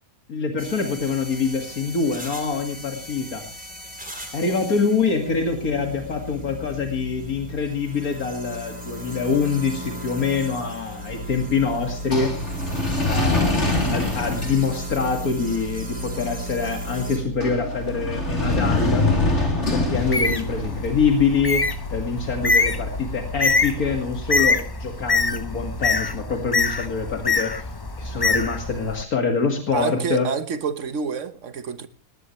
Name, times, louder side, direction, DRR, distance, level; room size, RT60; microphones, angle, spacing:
voice 1, 0.3-3.4 4.3-12.3 13.0-19.1 19.7-21.6 21.9-27.5 28.0-30.3, left 5 dB, 90° left, 2.6 m, -25 dB
sound 1, 0.6-17.2, left 2 dB, 5° right, 3.9 m, -38 dB
sound 2, 11.0-24.1, left 2 dB, 50° left, 3.7 m, -26 dB
Bird, 19.9-29.0, left 3 dB, 25° left, 0.5 m, -25 dB
voice 2, 29.7-31.9, right 6 dB, 60° right, 1.4 m, -28 dB
18.5 x 18.5 x 3.2 m
omnidirectional pair, 1.5 m